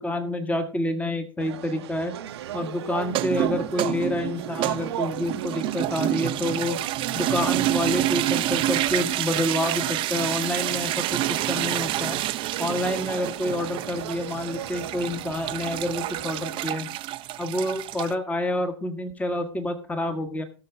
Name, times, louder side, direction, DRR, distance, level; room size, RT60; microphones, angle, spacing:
voice 1, 0.0-2.1 2.5-6.8 7.1-12.2 12.6-16.9 17.4-20.4, left 1 dB, 10° left, 7 dB, 1.5 m, -28 dB
sound 1, 1.4-16.8, right 12 dB, 60° right, 0.8 m, -37 dB
sound 2, 3.0-18.1, right 14 dB, 35° right, 0.6 m, -28 dB
18.0 x 6.8 x 3.7 m, 0.36 s
figure-of-eight pair, 90°, 15 cm